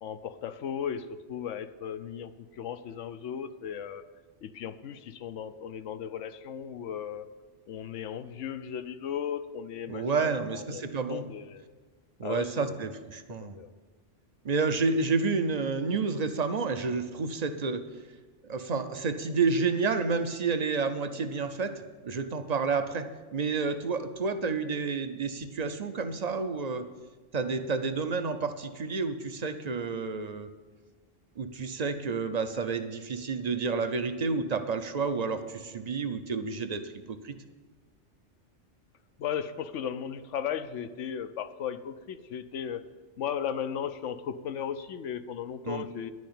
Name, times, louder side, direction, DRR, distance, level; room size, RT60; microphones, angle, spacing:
voice 1, 0.0-4.0 4.4-7.3 7.7-10.8 11.1-11.6 12.2-12.8 13.4-13.7 39.2-42.9 43.2-46.1, left 8 dB, 85° left, 11 dB, 1.0 m, -36 dB
voice 2, 9.9-11.2 12.2-13.6 14.4-17.9 18.5-26.9 27.3-30.5 31.4-37.4 45.6-45.9, right 4 dB, 40° right, 9 dB, 0.7 m, -30 dB
11.0 x 6.4 x 8.6 m, 1.3 s
omnidirectional pair, 1.2 m